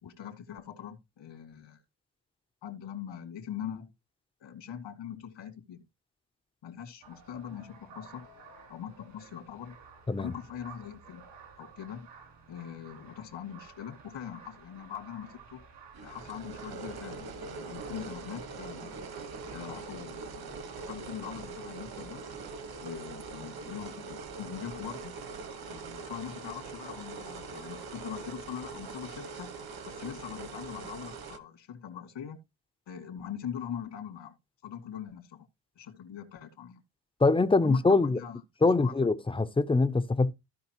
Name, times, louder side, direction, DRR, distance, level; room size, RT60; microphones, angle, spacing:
voice 1, 0.0-1.8 2.6-3.9 4.4-5.8 6.6-8.3 8.7-9.8 10.2-11.3 11.6-12.1 12.5-15.6 16.0-19.0 19.5-22.2 22.8-25.1 25.7-29.5 29.9-32.4 32.9-34.4 34.6-35.5 35.8-36.8 37.6-39.1, left 9 dB, 80° left, 2.2 m, -42 dB
sound 1, 7.0-22.8, right 5 dB, 70° right, 3.1 m, -54 dB
sound 2, 15.9-31.4, right 4 dB, 55° right, 1.5 m, -42 dB
voice 2, 37.2-38.2 38.6-40.3, left 3 dB, 10° left, 0.6 m, -24 dB
15.5 x 5.2 x 2.9 m
cardioid pair, 120°, 44 cm